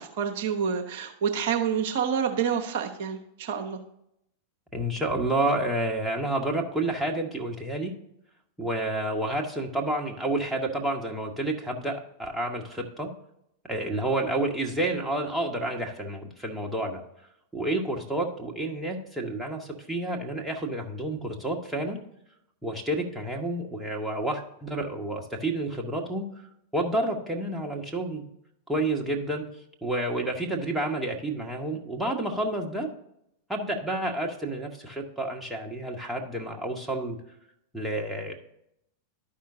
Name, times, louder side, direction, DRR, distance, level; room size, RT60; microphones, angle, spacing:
voice 1, 0.0-3.8, right 7 dB, 50° right, 4 dB, 0.8 m, -28 dB
voice 2, 4.7-7.9 8.6-13.1 13.7-17.0 17.5-22.0 22.6-26.3 26.7-28.2 28.7-29.4 29.8-32.9 33.5-37.2 37.7-38.3, right 1 dB, 5° right, 0 dB, 1.3 m, -29 dB
12.0 x 5.6 x 2.7 m, 0.79 s
figure-of-eight pair, 90°, 0 cm